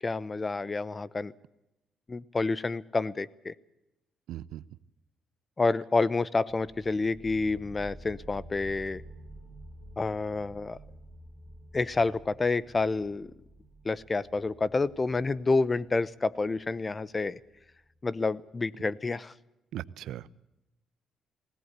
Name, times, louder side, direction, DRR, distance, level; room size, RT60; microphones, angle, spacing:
voice 1, 0.0-1.3 2.1-3.5 5.6-9.0 10.0-10.8 11.7-13.3 13.8-17.4 18.0-19.3, left 3 dB, 25° left, 20 dB, 0.8 m, -29 dB
voice 2, 4.3-4.6 19.7-20.3, right 12 dB, 85° right, 18 dB, 0.7 m, -38 dB
sound 1, 6.5-17.9, right 1 dB, ahead, 7.6 m, -50 dB
20.0 x 17.5 x 8.1 m, 0.91 s
cardioid pair, 90°, 0 cm